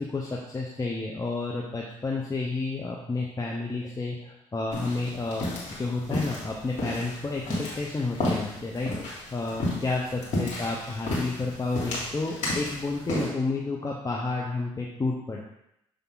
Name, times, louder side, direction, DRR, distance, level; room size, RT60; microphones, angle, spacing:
voice 1, 0.0-8.9 9.3-15.5, left 3 dB, 25° left, -2 dB, 0.9 m, -31 dB
sound 1, 4.7-13.3, left 1 dB, 65° left, 2.2 m, -33 dB
6.9 x 3.5 x 4.0 m, 0.80 s
supercardioid pair, 60°, 13 cm